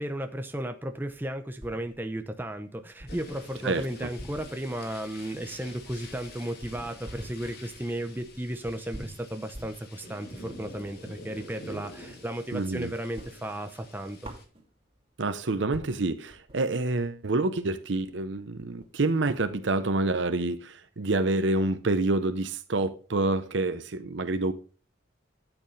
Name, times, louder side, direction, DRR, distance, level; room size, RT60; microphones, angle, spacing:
voice 1, 0.0-14.3, right 1 dB, 10° right, 0.7 m, -34 dB
sound 1, 1.1-2.2 2.6-2.7 3.0-11.6 12.0-12.7 13.0-15.0 15.4-15.5 15.7-19.9, equal, 30° right, 2.9 m, -48 dB
sound 2, 3.1-14.4, left 2 dB, 55° left, 2.8 m, -47 dB
voice 2, 3.6-4.1 12.5-12.9 15.2-24.5, right 2 dB, 65° right, 0.8 m, -27 dB
12.5 x 8.1 x 3.2 m
head